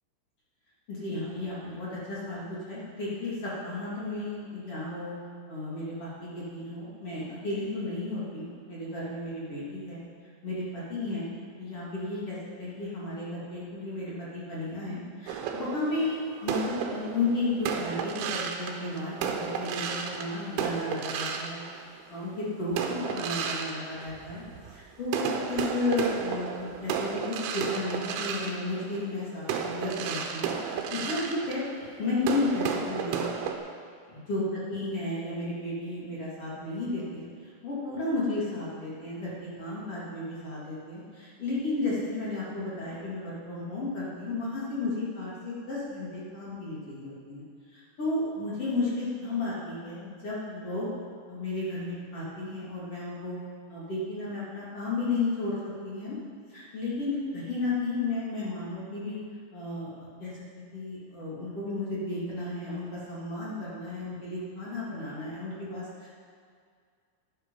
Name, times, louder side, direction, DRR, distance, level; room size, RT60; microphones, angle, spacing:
voice 1, 0.9-5.2 5.5-10.0 10.4-11.3 11.6-21.6 22.1-24.4 24.7-33.2 34.3-37.3 37.6-47.4 47.7-50.9 51.3-53.4 53.7-55.6 55.8-56.2 56.5-59.2 59.5-59.9 60.2-60.4 60.7-66.1, left 2 dB, 40° left, -8 dB, 2.6 m, -33 dB
sound 1, 15.3-22.2 22.7-24.7 25.1-33.6, right 7 dB, 75° right, 3.1 m, -33 dB
11.0 x 10.5 x 5.5 m, 2.1 s
omnidirectional pair, 5.9 m